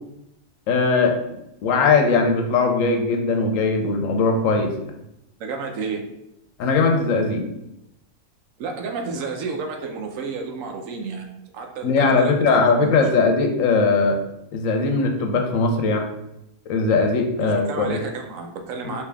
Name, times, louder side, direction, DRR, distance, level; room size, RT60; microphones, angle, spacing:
voice 1, 0.7-1.2 1.6-4.7 6.6-7.5 11.8-14.2 14.5-16.0 16.7-18.0 18.9-19.0, left 4 dB, 75° left, 4 dB, 0.9 m, -19 dB
voice 2, 5.4-6.0 8.6-13.3 17.4-19.0, right 4 dB, 75° right, 3 dB, 1.0 m, -31 dB
3.4 x 2.7 x 3.4 m, 0.84 s
omnidirectional pair, 1.5 m